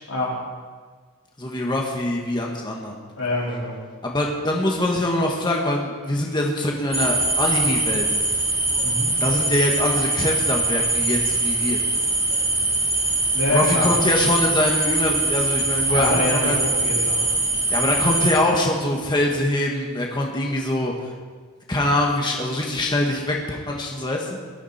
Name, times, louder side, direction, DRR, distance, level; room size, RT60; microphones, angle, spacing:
voice 1, 0.1-0.4 3.2-3.8 8.8-9.2 13.3-13.9 15.9-17.3, left 1 dB, 85° left, -4 dB, 4.5 m, -25 dB
voice 2, 1.4-3.0 4.0-8.1 9.2-11.8 13.5-16.6 17.7-21.1 21.7-24.4, left 1 dB, 20° left, -1 dB, 1.6 m, -23 dB
sound 1, 6.9-18.3, right 2 dB, 15° right, 3.3 m, -22 dB
20.0 x 13.0 x 4.3 m, 1.5 s
head